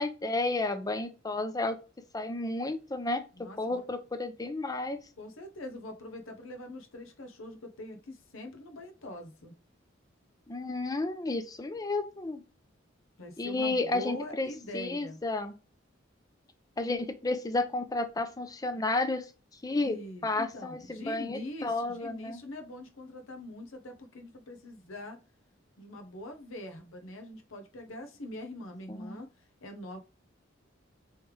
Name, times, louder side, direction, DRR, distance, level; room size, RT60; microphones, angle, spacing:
voice 1, 0.0-1.8 2.1-5.0 10.5-12.4 13.4-15.5 16.8-19.3 19.6-20.0 20.2-22.4 28.9-29.2, left 2 dB, 20° left, 0.5 m, -32 dB
voice 2, 3.3-3.8 5.2-9.5 13.2-15.2 19.8-25.2 25.8-29.3 29.6-30.0, left 1 dB, 90° left, 0.8 m, -43 dB
3.3 x 3.1 x 3.2 m
head